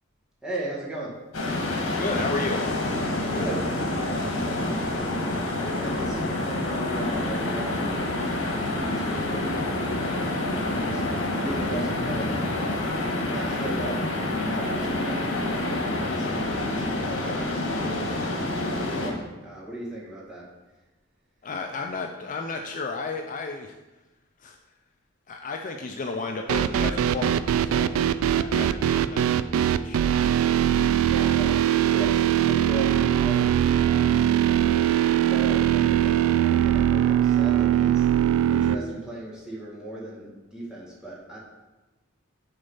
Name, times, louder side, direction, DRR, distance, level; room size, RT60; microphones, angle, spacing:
voice 1, 0.4-1.2 3.3-4.9 5.6-11.0 11.3-14.0 14.5-18.5 18.9-20.5 31.0-35.0 35.3-38.1 38.5-41.4, right 1 dB, 5° right, -7 dB, 1.7 m, -37 dB
sound 1, 1.3-19.1, left 2 dB, 90° left, 1.4 m, -27 dB
voice 2, 2.0-2.6 21.4-23.8 24.4-24.6 25.3-29.3 29.8-30.2, left 3 dB, 40° left, 3 dB, 0.4 m, -33 dB
sound 2, 26.5-38.7, right 10 dB, 80° right, 0.3 m, -21 dB
6.7 x 4.0 x 5.4 m, 1.1 s
head